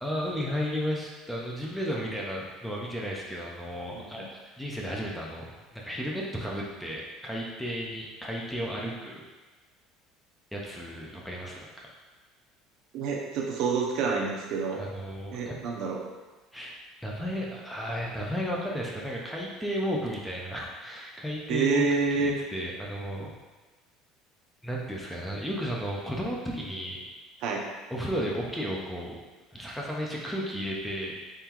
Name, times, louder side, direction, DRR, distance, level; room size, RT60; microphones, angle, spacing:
voice 1, 0.0-5.5 5.7-9.2 10.5-11.9 14.8-15.6 16.5-16.8 17.0-21.9 22.1-23.3 24.6-27.0 27.9-29.1 29.5-31.1, equal, ahead, -3 dB, 0.4 m, -33 dB
voice 2, 3.9-4.3 12.9-14.8 15.3-16.0 21.5-22.3 27.4-27.6, right 4 dB, 55° right, 0 dB, 0.6 m, -28 dB
3.7 x 3.4 x 2.9 m, 1.3 s
cardioid pair, 170°, 0 cm